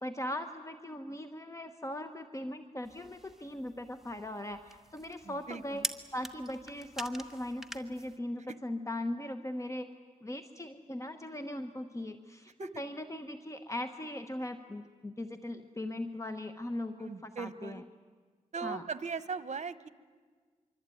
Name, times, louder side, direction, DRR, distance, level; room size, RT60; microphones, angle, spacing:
voice 1, 0.0-5.8 6.1-9.9 10.2-17.8 18.6-18.8, left 1 dB, 25° left, 8 dB, 1.1 m, -39 dB
sound 1, 2.8-8.2, right 1 dB, 5° right, 1.4 m, -44 dB
voice 2, 5.2-5.8 12.6-12.8 17.0-17.8 18.5-19.9, right 5 dB, 60° right, 14 dB, 1.1 m, -39 dB
25.0 x 24.5 x 9.2 m, 1.5 s
wide cardioid pair, 80°, 13 cm